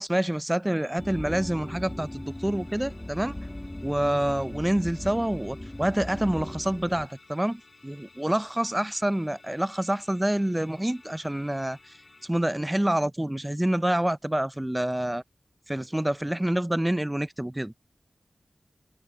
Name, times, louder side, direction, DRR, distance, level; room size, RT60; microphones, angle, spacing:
voice 1, 0.0-3.4 3.8-11.8 12.2-15.2 15.7-17.7, right 1 dB, 10° right, 0.4 m, -27 dB
Musical instrument, 0.6-12.3, left 3 dB, 45° left, 6.2 m, -55 dB
sound 1, 1.0-7.1, left 1 dB, 15° left, 1.4 m, -38 dB
wide cardioid pair, 75°, 0 cm